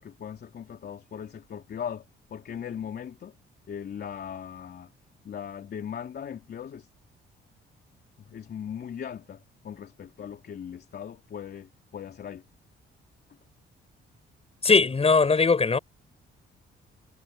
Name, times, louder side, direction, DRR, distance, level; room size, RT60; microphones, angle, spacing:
voice 1, 0.0-3.3 3.7-4.9 5.2-6.9 8.2-12.4, left 8 dB, 55° left, 3.4 m, -39 dB
voice 2, 14.6-15.8, left 4 dB, 30° left, 4.9 m, -20 dB
cardioid pair, 90°, 20 cm